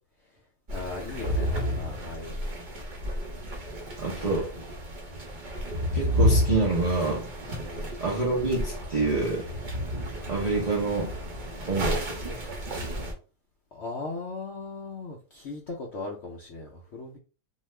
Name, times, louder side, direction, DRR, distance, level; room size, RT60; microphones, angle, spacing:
voice 1, 0.7-2.6 7.6-7.9 13.7-17.2, left 3 dB, 85° left, -1 dB, 0.5 m, -38 dB
sound 1, 0.7-13.1, equal, 40° right, 0.7 m, -31 dB
voice 2, 4.0-4.5 5.9-7.3 8.0-9.5 10.3-11.1 11.7-12.2, right 3 dB, 70° right, -4 dB, 0.4 m, -27 dB
2.7 x 2.3 x 3.2 m, 0.34 s
omnidirectional pair, 1.8 m